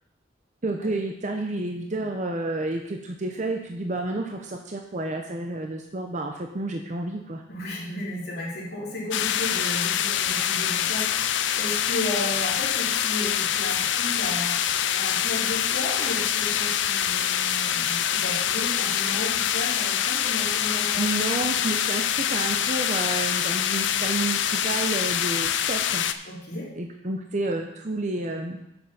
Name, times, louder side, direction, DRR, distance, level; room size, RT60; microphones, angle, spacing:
voice 1, 0.6-7.4 21.0-26.0 26.8-28.6, right 2 dB, 40° right, 3 dB, 0.7 m, -30 dB
voice 2, 7.5-21.0 26.2-26.7, left 1 dB, 55° left, -4 dB, 2.7 m, -34 dB
sound 1, 9.1-26.1, left 10 dB, 70° left, 0.5 m, -25 dB
7.7 x 7.0 x 5.5 m, 0.85 s
head